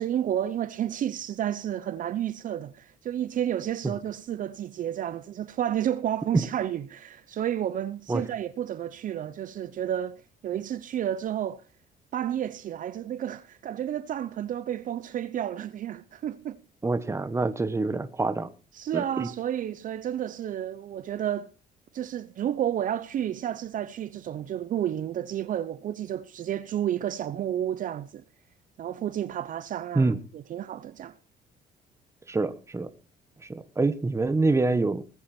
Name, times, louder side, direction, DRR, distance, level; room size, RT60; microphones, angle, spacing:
voice 1, 0.0-11.6 12.1-16.6 18.8-21.5 21.9-28.2 28.8-31.2, right 10 dB, 50° right, 0.8 m, -31 dB
voice 2, 16.8-18.5 18.9-19.3 29.9-30.2 32.3-32.9 33.4-35.0, right 3 dB, 15° right, 1.4 m, -26 dB
20.0 x 8.5 x 4.5 m
cardioid pair, 110°, 17 cm